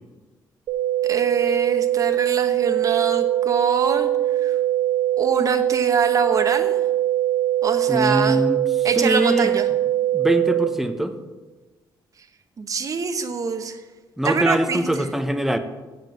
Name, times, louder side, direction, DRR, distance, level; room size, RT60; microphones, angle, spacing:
sound 1, 0.7-10.7, right 13 dB, 90° right, 1.2 m, -22 dB
voice 1, 1.0-4.1 4.4-4.6 5.2-6.8 7.6-8.4 8.8-9.7 12.6-13.8 14.2-14.9, right 5 dB, 40° right, 8 dB, 1.0 m, -25 dB
voice 2, 7.9-9.5 10.1-11.1 14.2-15.6, right 1 dB, 5° right, 8 dB, 0.8 m, -23 dB
7.4 x 7.3 x 7.9 m, 1.3 s
cardioid pair, 115°, 8 cm